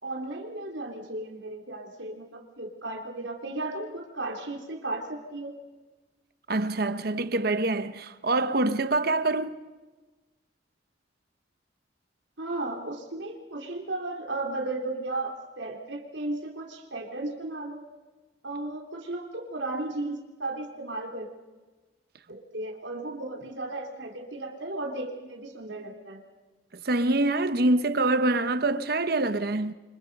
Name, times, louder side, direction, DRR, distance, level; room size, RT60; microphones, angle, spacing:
voice 1, 0.0-5.6 12.4-17.8 18.4-21.3 22.3-26.2, right 2 dB, 80° right, 3.3 m, -35 dB
voice 2, 6.5-9.5 26.8-29.7, right 2 dB, 55° right, 1.1 m, -25 dB
29.5 x 25.5 x 5.4 m
head